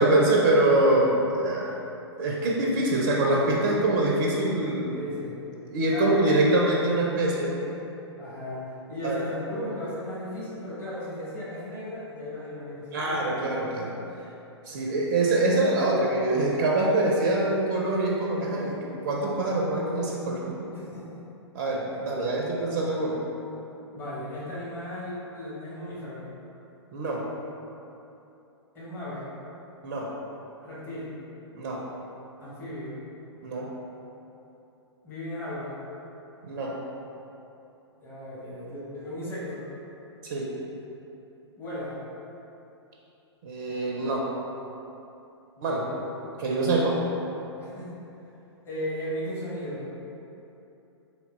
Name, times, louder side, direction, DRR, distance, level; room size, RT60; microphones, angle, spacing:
voice 1, 0.0-1.7 2.2-5.0 5.7-7.6 9.0-9.2 12.9-14.0 14.7-20.6 21.5-23.2 26.9-27.2 29.8-30.1 31.5-31.8 33.4-33.7 36.4-36.8 40.2-40.5 43.4-44.3 45.6-45.8 46.4-47.0, right 2 dB, 40° right, -2 dB, 0.5 m, -24 dB
voice 2, 4.9-5.4 5.9-6.5 8.2-13.2 20.7-21.2 21.9-22.3 23.9-26.2 28.7-29.3 30.6-31.1 32.4-33.0 35.0-35.7 37.9-39.6 41.6-42.0 45.6-46.1 47.6-47.9 48.6-49.8, left 1 dB, 15° left, -9 dB, 1.0 m, -36 dB
3.7 x 2.9 x 3.1 m, 2.9 s
figure-of-eight pair, 115°, 15 cm